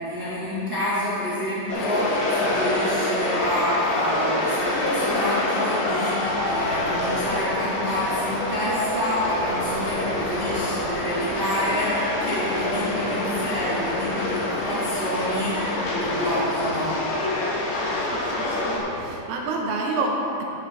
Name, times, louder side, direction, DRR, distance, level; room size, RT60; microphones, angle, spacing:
voice 1, 0.0-17.0, equal, 30° right, -13 dB, 2.3 m, -28 dB
sound 1, 1.7-18.8, left 2 dB, 80° left, 5.3 m, -26 dB
sound 2, 6.2-19.1, equal, 60° left, 3.4 m, -42 dB
voice 2, 18.1-20.4, right 3 dB, 80° right, 0 dB, 3.4 m, -28 dB
16.5 x 7.1 x 3.9 m, 2.8 s
omnidirectional pair, 5.9 m